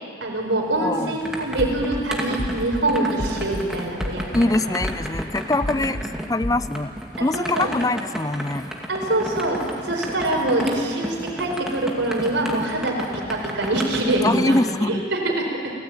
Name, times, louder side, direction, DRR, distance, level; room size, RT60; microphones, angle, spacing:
voice 1, 0.2-4.7 5.8-5.9 7.3-7.7 8.9-14.6 14.9-15.7, right 1 dB, 80° right, 0 dB, 4.9 m, -24 dB
sound 1, 0.7-14.7, equal, 5° right, 2.1 m, -33 dB
voice 2, 0.8-1.2 4.3-6.0 6.3-6.9 7.2-8.7 14.2-15.0, left 2 dB, 20° left, 14 dB, 0.5 m, -23 dB
sound 2, 1.6-2.0 2.4-2.8 3.2-3.6 4.0-4.4 4.8-5.2 5.6-6.0 6.4-6.6, left 1 dB, 45° left, 1.4 m, -29 dB
29.5 x 14.5 x 9.0 m, 2.3 s
head